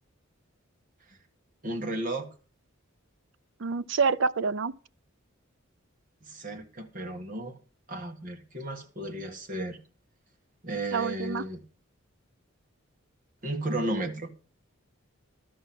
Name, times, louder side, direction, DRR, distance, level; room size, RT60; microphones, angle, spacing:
voice 1, 1.6-2.3 6.2-7.6 7.9-9.8 10.6-11.6 13.4-14.3, right 1 dB, 40° right, 1.6 m, -34 dB
voice 2, 3.6-4.7 10.9-11.4, right 5 dB, 60° right, 0.5 m, -27 dB
12.5 x 5.6 x 7.6 m
head